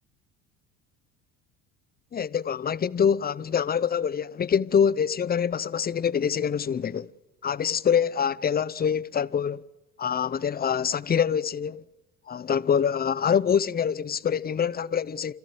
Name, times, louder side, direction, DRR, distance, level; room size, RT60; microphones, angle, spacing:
voice 1, 2.1-7.1 7.4-9.6 10.0-11.8 12.3-15.3, left 7 dB, 20° left, 0.7 m, -25 dB
29.5 x 14.0 x 7.8 m
hypercardioid pair, 60°, 43 cm